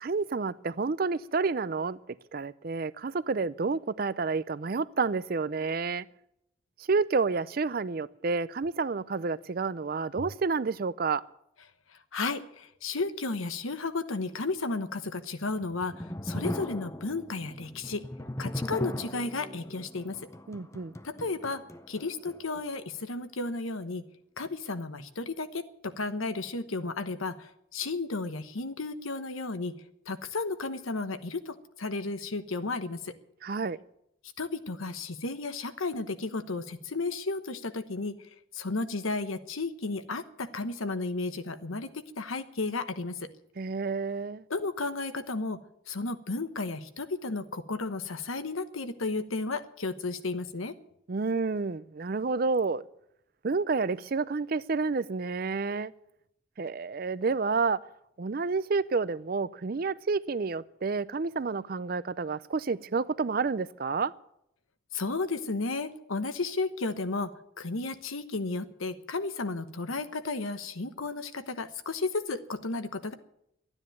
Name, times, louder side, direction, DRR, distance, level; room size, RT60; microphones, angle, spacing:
voice 1, 0.0-2.0 2.3-6.0 6.9-11.2 20.5-20.9 33.4-33.8 43.6-44.4 51.1-52.9 53.4-55.9 56.6-57.8 58.2-64.1, right 4 dB, 45° right, 0.5 m, -29 dB
voice 2, 12.1-18.0 18.4-20.2 21.0-21.6 21.9-24.0 24.4-29.7 30.1-33.1 34.4-38.2 38.5-43.3 44.5-45.6 45.9-50.7 64.9-67.3 67.6-73.1, left 3 dB, 85° left, 1.1 m, -33 dB
sound 1, 15.4-22.6, left 1 dB, 15° left, 0.6 m, -38 dB
13.0 x 9.8 x 9.2 m
head